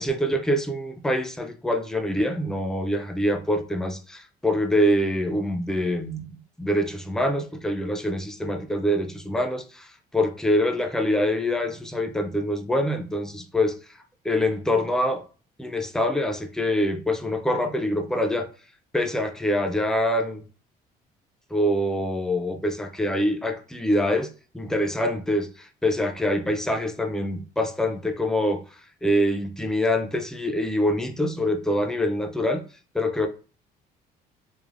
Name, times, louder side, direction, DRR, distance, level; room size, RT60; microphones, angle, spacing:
voice 1, 0.0-6.3 6.6-14.0 14.2-15.2 15.6-18.5 18.9-20.4 21.5-28.6 29.0-32.6 32.9-33.3, left 1 dB, 5° left, 0.4 m, -25 dB
3.2 x 2.0 x 2.4 m
cardioid pair, 110°, 17 cm